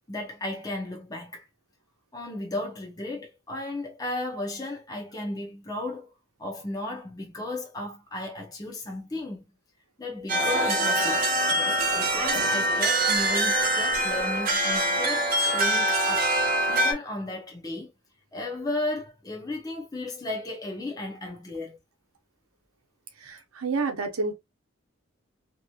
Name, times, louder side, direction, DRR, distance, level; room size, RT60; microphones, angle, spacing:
voice 1, 0.1-1.5 2.1-6.1 6.4-9.4 10.0-16.3 16.7-17.9 18.3-21.8, left 2 dB, 15° left, 0.7 m, -34 dB
sound 1, 10.3-16.9, right 1 dB, 40° right, 0.6 m, -24 dB
voice 2, 23.2-24.3, right 4 dB, 85° right, 0.8 m, -29 dB
2.9 x 2.9 x 2.3 m
head